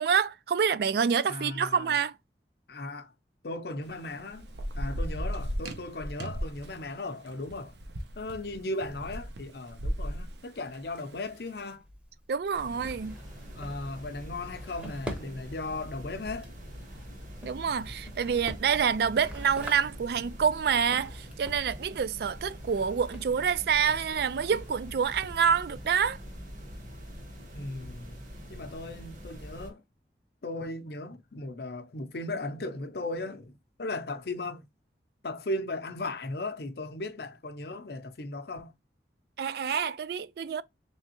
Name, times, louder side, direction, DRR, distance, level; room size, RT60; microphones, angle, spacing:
voice 1, 0.0-2.1 12.3-13.2 17.4-26.2 39.4-40.6, right 7 dB, 60° right, 0.3 m, -27 dB
voice 2, 1.3-1.9 2.7-3.1 3.4-4.5 4.7-7.7 8.2-11.8 13.5-16.5 27.5-28.2 28.5-29.8 30.4-33.5 33.8-34.6 35.2-38.7, left 2 dB, 65° left, 0.6 m, -37 dB
Thunder / Rain, 3.8-11.5, equal, 80° right, 0.7 m, -36 dB
Drawer open or close, 10.9-25.9, equal, 5° right, 0.7 m, -47 dB
sound 1, 12.5-29.7, equal, 45° right, 1.2 m, -44 dB
3.5 x 3.3 x 2.8 m
head